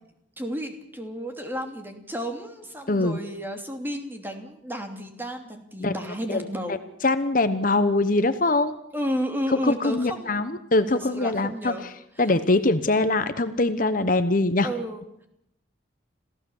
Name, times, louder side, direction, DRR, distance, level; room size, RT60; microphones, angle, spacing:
voice 1, 0.4-6.8 8.9-10.4 10.9-11.9 14.6-15.3, equal, 10° right, 4 dB, 2.8 m, -32 dB
voice 2, 2.9-3.2 5.8-5.9 6.3-6.8 7.0-8.7 9.5-11.9 12.2-14.7, left 2 dB, 45° left, 11 dB, 1.1 m, -23 dB
27.0 x 16.0 x 7.2 m, 0.79 s
head